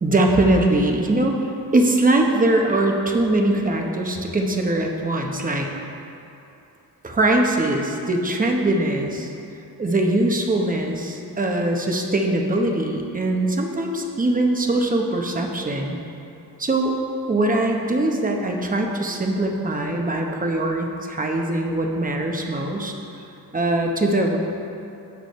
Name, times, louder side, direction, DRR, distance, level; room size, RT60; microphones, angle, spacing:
voice 1, 0.0-5.7 7.0-9.3 9.8-16.0 16.6-16.9 17.3-22.9 23.5-24.4, right 2 dB, 20° right, 2 dB, 0.9 m, -21 dB
17.0 x 6.2 x 3.1 m, 2.8 s
wide cardioid pair, 150°, 37 cm